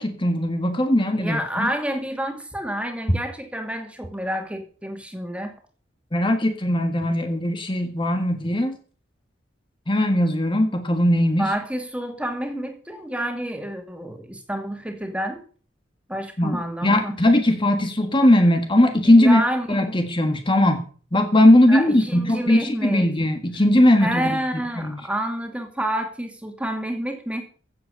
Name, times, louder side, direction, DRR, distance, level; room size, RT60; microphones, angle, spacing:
voice 1, 0.0-1.7 3.1-3.2 6.1-8.8 9.9-11.5 16.4-19.4 19.7-20.8 21.1-24.9, left 1 dB, 25° left, 6 dB, 1.6 m, -19 dB
voice 2, 1.1-5.5 11.4-15.4 16.1-17.2 19.0-19.8 21.7-23.1 24.0-27.4, right 1 dB, 5° right, 5 dB, 2.5 m, -29 dB
15.5 x 8.0 x 6.7 m, 0.41 s
head